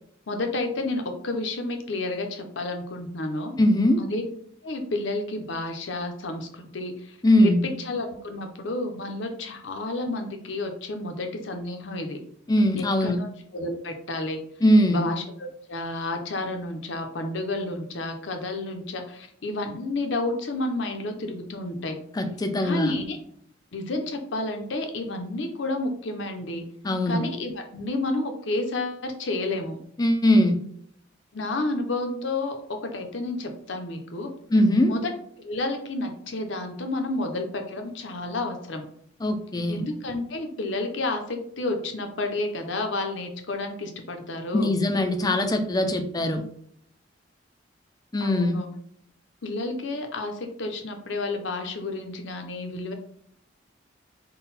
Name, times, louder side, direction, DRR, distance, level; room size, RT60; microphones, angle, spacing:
voice 1, 0.3-3.5 4.0-4.3 4.6-12.2 12.8-13.3 13.5-14.4 14.9-22.0 22.6-23.2 23.7-26.6 27.1-29.8 31.3-34.3 34.9-35.1 35.4-38.8 39.7-44.7 48.2-48.7 49.4-52.9, left 2 dB, 70° left, 4 dB, 0.7 m, -30 dB
voice 2, 3.6-4.0 7.2-7.6 12.5-13.2 14.6-15.1 22.2-22.9 26.8-27.2 30.0-30.6 34.5-34.9 39.2-39.8 44.5-46.4 48.1-48.6, left 1 dB, 20° left, 7 dB, 0.4 m, -21 dB
3.8 x 2.2 x 4.1 m, 0.67 s
head